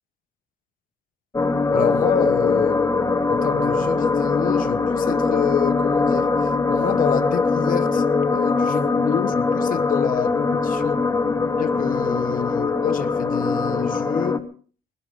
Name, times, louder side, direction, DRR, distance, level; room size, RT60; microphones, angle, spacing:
sound 1, 1.3-14.4, left 4 dB, 20° left, 1.2 m, -21 dB
voice 1, 1.7-11.0 11.6-14.5, left 9 dB, 55° left, 1.2 m, -28 dB
21.5 x 16.5 x 3.7 m
cardioid pair, 110°, 17 cm